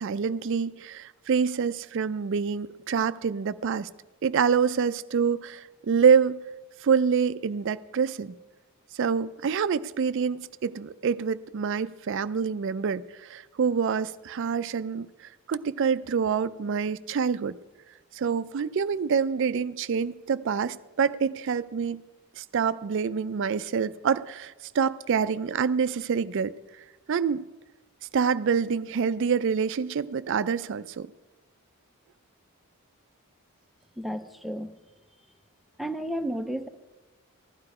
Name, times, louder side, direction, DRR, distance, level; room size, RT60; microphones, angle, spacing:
voice 1, 0.0-3.9 4.2-6.4 6.8-8.4 9.0-15.1 15.5-17.6 18.1-22.0 22.4-26.5 27.1-27.4 28.1-31.1, right 6 dB, 55° right, 0.4 m, -26 dB
voice 2, 34.0-34.7 35.8-36.7, right 1 dB, ahead, 0.5 m, -32 dB
15.5 x 12.0 x 4.8 m
head